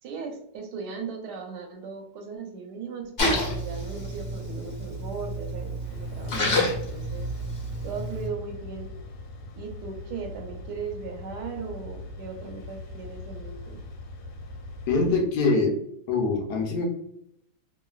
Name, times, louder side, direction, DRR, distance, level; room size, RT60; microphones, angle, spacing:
voice 1, 0.0-7.3 7.8-8.9 9.5-13.8, right 5 dB, 75° right, 3 dB, 1.2 m, -38 dB
Splash splatter, 3.2-8.3, left 1 dB, 45° left, 1.1 m, -29 dB
sound 1, 5.8-15.2, left 2 dB, 90° left, 1.3 m, -41 dB
voice 2, 14.9-15.7 16.1-16.9, left 3 dB, 70° left, 2 dB, 1.2 m, -23 dB
3.0 x 2.5 x 2.3 m, 0.73 s
omnidirectional pair, 1.9 m